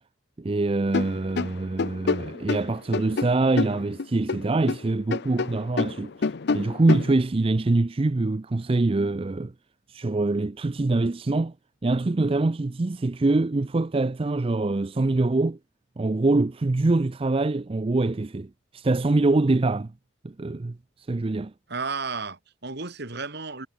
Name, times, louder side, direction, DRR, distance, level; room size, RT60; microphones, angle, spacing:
voice 1, 0.4-6.1 6.5-9.5 9.9-11.5 11.8-15.6 16.0-19.9 20.2-21.5, right 2 dB, 25° right, 0.4 m, -24 dB
sound 1, 0.9-4.8 5.1-7.2, left 4 dB, 55° left, 0.5 m, -28 dB
voice 2, 21.7-23.7, right 4 dB, 55° right, 2.2 m, -33 dB
head